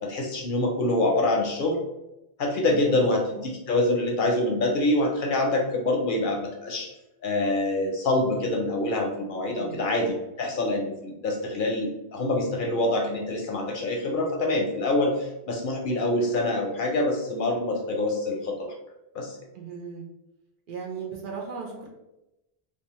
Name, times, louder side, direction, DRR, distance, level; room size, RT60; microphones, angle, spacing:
voice 1, 0.0-1.8 2.4-6.9 7.2-18.7 19.1-19.4, left 2 dB, 60° left, 0 dB, 0.6 m, -25 dB
voice 2, 2.7-3.0 9.5-9.8 19.5-20.1 20.7-21.9, right 5 dB, 60° right, 0 dB, 0.6 m, -37 dB
2.8 x 2.2 x 2.9 m, 0.94 s
omnidirectional pair, 1.1 m